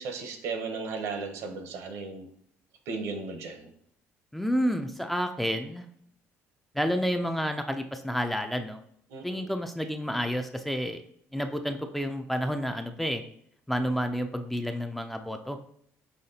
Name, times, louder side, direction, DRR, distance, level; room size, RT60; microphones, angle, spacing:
voice 1, 0.0-2.3 2.9-3.7 9.1-9.5, right 4 dB, 75° right, 6 dB, 0.8 m, -35 dB
voice 2, 4.3-5.8 6.7-8.8 9.2-11.0 11.3-13.2 13.7-15.6, equal, 5° left, 6 dB, 0.4 m, -30 dB
5.7 x 3.0 x 2.8 m, 0.67 s
cardioid pair, 115°, 5 cm